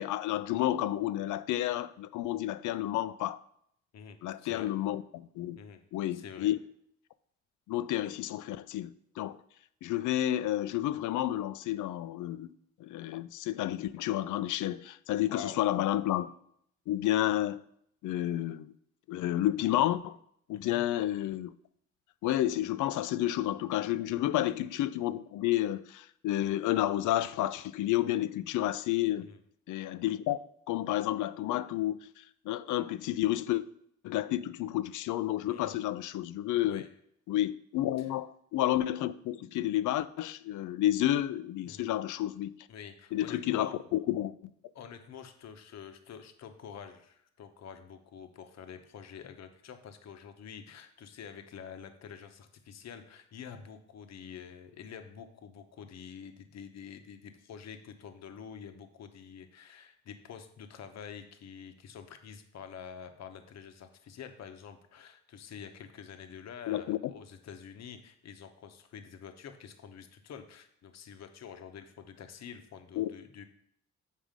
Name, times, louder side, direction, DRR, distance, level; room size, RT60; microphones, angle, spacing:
voice 1, 0.0-3.4 4.2-5.6 5.9-6.6 7.7-9.4 9.8-12.5 12.8-16.3 16.9-17.6 18.0-18.7 19.1-20.2 20.5-21.5 22.2-29.3 29.7-30.4 30.7-33.6 34.0-36.8 37.3-42.5 43.1-44.3 66.7-67.0 73.0-73.1, left 13 dB, 80° left, 0.5 m, -30 dB
voice 2, 3.9-4.7 5.6-5.8 6.1-6.5 15.3-15.6 20.5-20.8 24.1-24.3 29.2-29.4 35.5-35.8 36.7-36.9 38.0-38.1 41.6-41.9 42.7-43.8 44.7-73.4, left 7 dB, 60° left, 1.0 m, -47 dB
7.5 x 4.9 x 5.1 m
cardioid pair, 90°, 30 cm